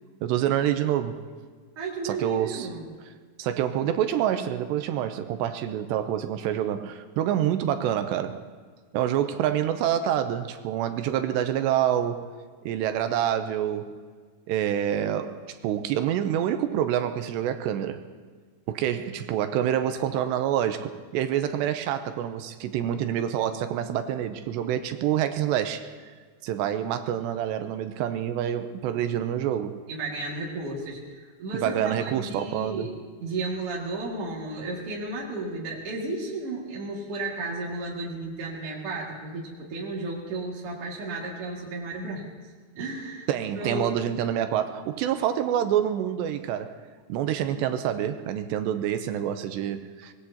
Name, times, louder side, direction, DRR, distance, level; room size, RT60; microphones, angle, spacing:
voice 1, 0.2-1.2 2.0-2.7 3.4-8.4 8.9-12.3 12.7-14.0 14.5-18.1 18.7-25.9 26.4-29.8 31.5-32.9 43.3-46.8 47.1-50.1, right 10 dB, 80° right, 9 dB, 2.8 m, -27 dB
voice 2, 1.8-2.8 29.9-32.9 33.2-42.3 42.7-43.3 43.6-43.9, right 2 dB, 40° right, -4 dB, 2.4 m, -33 dB
24.5 x 20.0 x 2.9 m, 1.5 s
omnidirectional pair, 5.2 m